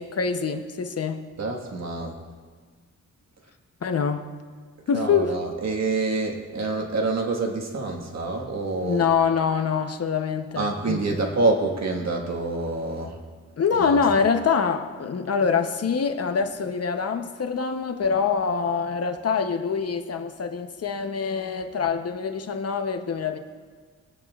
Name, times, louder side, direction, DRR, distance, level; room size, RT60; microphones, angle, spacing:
voice 1, 0.0-1.2 3.8-4.3 4.9-5.4 8.8-11.2 13.6-23.4, left 6 dB, 50° left, 6 dB, 0.8 m, -25 dB
voice 2, 1.4-2.2 4.9-9.0 10.6-13.1 13.7-14.0, right 3 dB, 55° right, 1 dB, 1.6 m, -27 dB
22.0 x 9.1 x 2.4 m, 1.5 s
cardioid pair, 100°, 32 cm